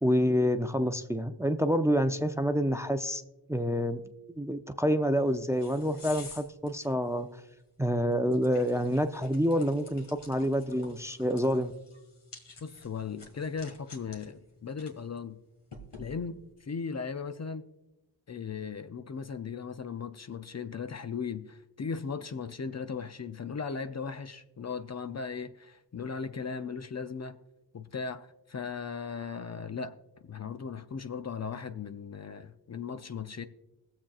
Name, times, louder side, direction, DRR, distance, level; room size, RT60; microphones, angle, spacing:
voice 1, 0.0-3.2 3.5-4.0 4.4-7.3 7.8-11.7, equal, 5° right, 0.5 m, -27 dB
sound 1, 5.1-16.5, left 3 dB, 70° left, 1.9 m, -52 dB
voice 2, 12.6-15.4 16.0-17.7 18.3-27.4 27.7-30.0 30.2-33.4, left 5 dB, 40° left, 0.5 m, -37 dB
21.5 x 7.3 x 2.4 m
cardioid pair, 50°, 43 cm